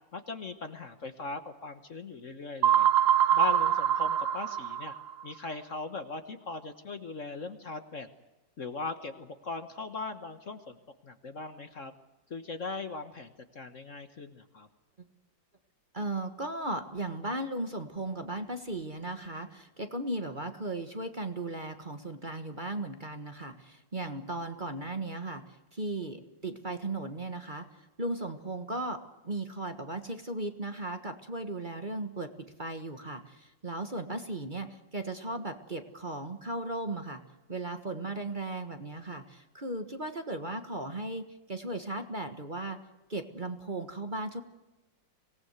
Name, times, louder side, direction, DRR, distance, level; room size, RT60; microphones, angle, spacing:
voice 1, 0.1-2.9 3.3-4.9 5.2-8.1 8.6-10.8 11.0-11.9 12.3-14.7, left 3 dB, 45° left, 9 dB, 1.5 m, -39 dB
sound 1, 2.6-5.2, right 10 dB, 80° right, 1.7 m, -24 dB
voice 2, 15.9-25.4 25.7-29.0 29.2-32.3 32.6-37.2 37.5-42.8 43.1-44.4, right 2 dB, 25° right, 7 dB, 1.5 m, -36 dB
25.5 x 18.5 x 8.1 m, 1.1 s
omnidirectional pair, 2.0 m